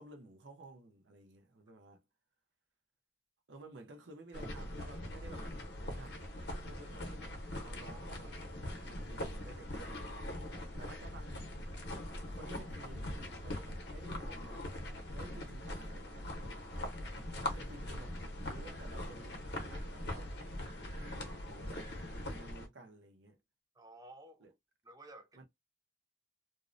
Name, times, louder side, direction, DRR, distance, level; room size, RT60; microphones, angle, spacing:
voice 1, 0.0-2.0 3.5-5.5 5.9-6.3 6.6-8.4 8.9-11.5 12.3-16.3 17.3-20.5 20.9-23.4 24.4-24.5 25.3-25.4, right 2 dB, 90° right, 0.7 m, -54 dB
sound 1, 4.3-22.7, left 1 dB, 65° left, 0.7 m, -42 dB
voice 2, 23.8-24.5 24.8-25.4, right 1 dB, 20° right, 0.4 m, -54 dB
2.6 x 2.0 x 2.4 m
head